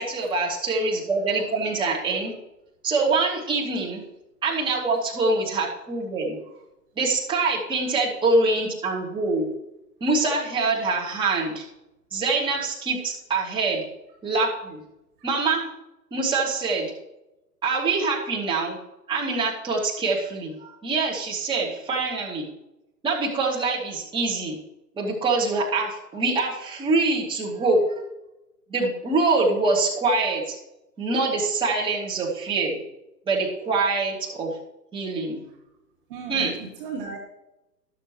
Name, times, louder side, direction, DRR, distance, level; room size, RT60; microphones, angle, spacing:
voice 1, 0.0-2.3 2.8-4.0 4.4-6.4 7.0-9.5 10.0-11.6 12.1-13.8 14.2-14.8 15.2-15.7 16.1-16.9 17.6-18.8 19.1-22.5 23.0-24.6 25.0-27.8 28.7-30.6 31.0-32.7 33.3-34.5 34.9-35.4 36.3-36.5, right 3 dB, 10° right, -4 dB, 2.6 m, -24 dB
voice 2, 36.1-37.2, right 5 dB, 35° right, 0 dB, 2.0 m, -36 dB
13.5 x 12.5 x 3.2 m, 0.93 s
figure-of-eight pair, 115°, 48 cm